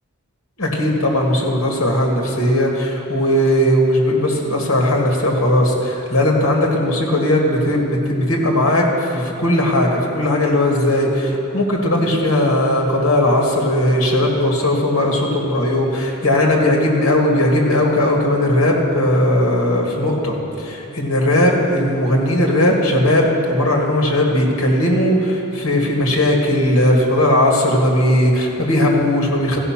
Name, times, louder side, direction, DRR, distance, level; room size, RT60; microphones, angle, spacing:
voice 1, 0.6-29.6, left 1 dB, 70° left, -1 dB, 1.8 m, -17 dB
15.0 x 5.6 x 5.9 m, 2.9 s
head